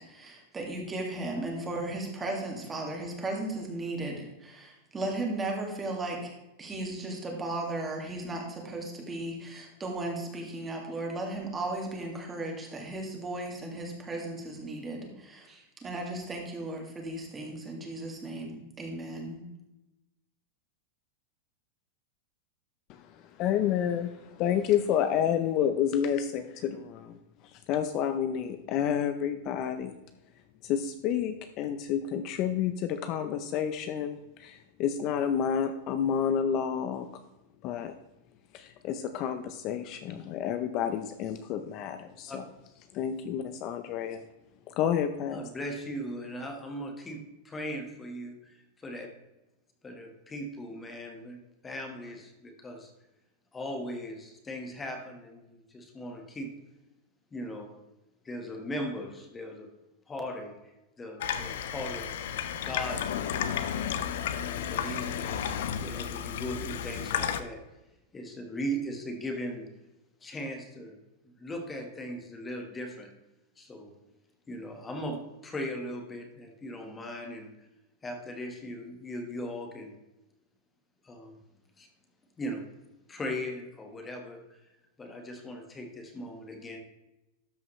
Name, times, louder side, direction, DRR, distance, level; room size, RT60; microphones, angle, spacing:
voice 1, 0.0-6.3 6.6-19.4, right 2 dB, 15° right, 1 dB, 2.0 m, -36 dB
voice 2, 23.4-24.1 24.4-27.2 27.7-29.9 30.6-37.1 37.6-37.9 38.5-42.4 42.9-44.2 44.8-45.4, left 9 dB, 40° left, 9 dB, 0.6 m, -29 dB
voice 3, 45.3-49.1 49.8-52.9 53.5-56.5 57.3-57.8 58.2-59.7 60.1-60.7 61.0-62.2 62.6-63.2 64.3-67.6 68.1-69.7 70.2-71.0 71.2-73.1 73.6-74.0 74.5-77.5 78.0-79.9 81.0-81.4 81.8-81.9 82.4-82.6 83.1-84.4 85.0-86.8, equal, 15° left, 4 dB, 1.4 m, -38 dB
Water tap faucet / Sink (filling or washing), 61.2-67.4, left 9 dB, 75° left, 0.7 m, -32 dB
12.5 x 5.6 x 3.1 m, 0.97 s
supercardioid pair, 150°, 0 cm